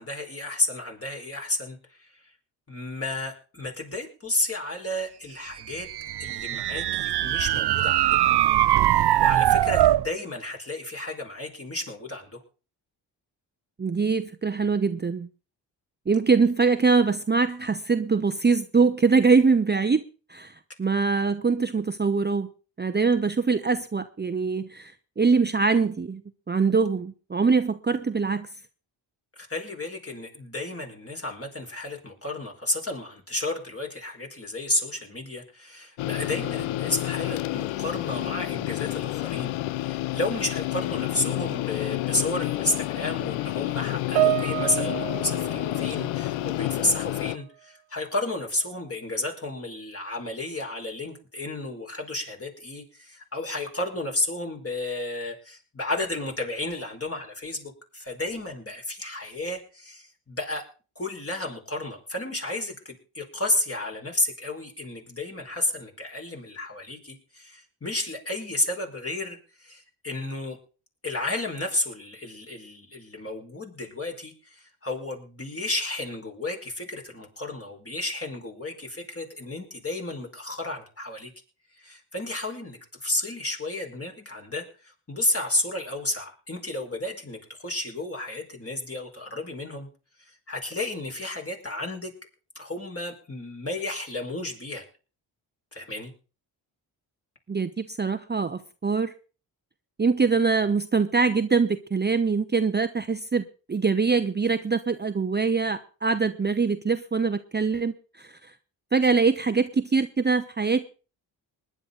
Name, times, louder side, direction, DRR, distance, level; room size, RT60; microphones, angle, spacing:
voice 1, 0.0-2.1 2.7-5.9 6.2-8.2 8.9-12.4 29.4-60.6 60.9-70.6 71.0-81.3 81.8-89.9 90.3-92.1 92.5-94.8 95.7-96.1, left 2 dB, 30° left, 1 dB, 4.8 m, -32 dB
sound 1, 5.7-10.1, right 13 dB, 60° right, 0.7 m, -22 dB
voice 2, 13.8-15.3 16.1-20.0 20.3-22.5 22.8-26.2 26.5-28.5 97.5-99.1 100.0-108.3 108.9-110.9, right 4 dB, 20° right, 9 dB, 0.8 m, -23 dB
sound 2, 36.0-47.4, left 17 dB, 90° left, 0.6 m, -29 dB
Piano, 44.2-46.8 47.1-47.4 48.2-48.3, right 18 dB, 85° right, 0.9 m, -29 dB
20.0 x 9.9 x 3.9 m, 0.35 s
supercardioid pair, 50°, 46 cm